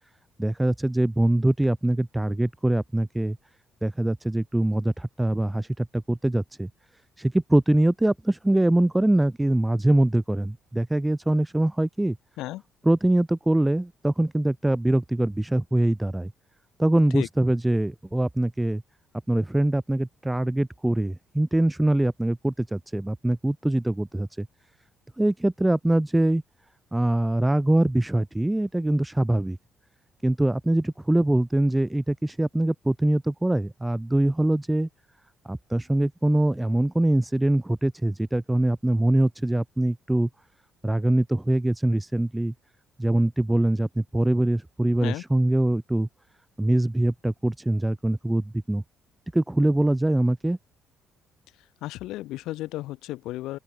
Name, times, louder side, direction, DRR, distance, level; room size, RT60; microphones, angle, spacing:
voice 1, 0.4-3.4 3.8-6.7 7.2-12.2 12.9-16.3 16.8-18.8 19.3-24.5 25.2-26.4 26.9-29.6 30.2-34.9 35.4-40.3 40.8-42.5 43.0-46.1 46.6-48.8 49.3-50.6, right 1 dB, 10° right, 1.9 m, -23 dB
voice 2, 51.8-53.6, left 16 dB, 85° left, 2.9 m, -33 dB
open air
supercardioid pair, 75°, 0 cm